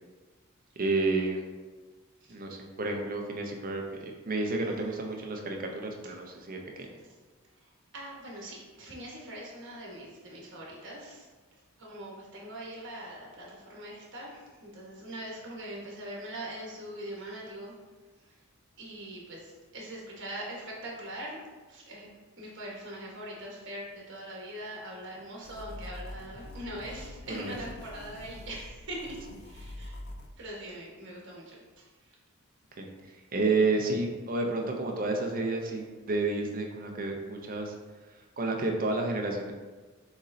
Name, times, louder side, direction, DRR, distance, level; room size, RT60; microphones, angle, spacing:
voice 1, 0.8-1.4 2.3-6.9 27.3-27.6 32.8-32.9 33.3-37.7 38.4-39.5, right 3 dB, 40° right, 2 dB, 0.6 m, -30 dB
voice 2, 4.6-5.1 7.6-7.7 7.9-11.3 11.8-17.7 18.2-18.3 18.8-21.4 21.7-22.1 22.4-30.0 30.4-32.2, right 1 dB, 55° right, -3 dB, 1.2 m, -42 dB
sound 1, 25.4-30.3, left 1 dB, 50° left, 0.5 m, -45 dB
6.4 x 3.1 x 2.6 m, 1.3 s
head